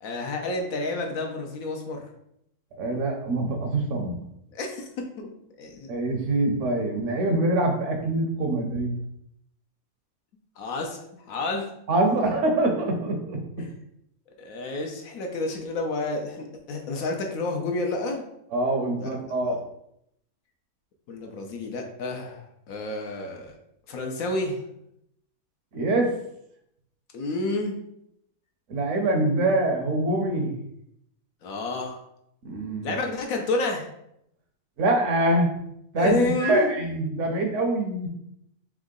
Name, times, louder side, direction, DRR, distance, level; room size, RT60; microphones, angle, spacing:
voice 1, 0.0-2.1 4.5-5.3 5.6-5.9 10.6-11.7 13.6-13.7 14.4-18.2 19.0-19.1 19.4-19.6 21.1-23.6 23.9-24.6 27.1-27.8 31.4-32.0 32.8-33.9 35.9-36.8, left 2 dB, 70° left, 2 dB, 1.1 m, -30 dB
voice 2, 2.8-4.2 5.9-9.0 11.9-13.7 18.5-19.6 25.7-26.2 28.7-30.5 32.4-33.0 34.8-35.5 35.9-38.1, right 2 dB, 60° right, 3 dB, 1.0 m, -24 dB
3.6 x 3.0 x 3.7 m, 0.77 s
omnidirectional pair, 1.6 m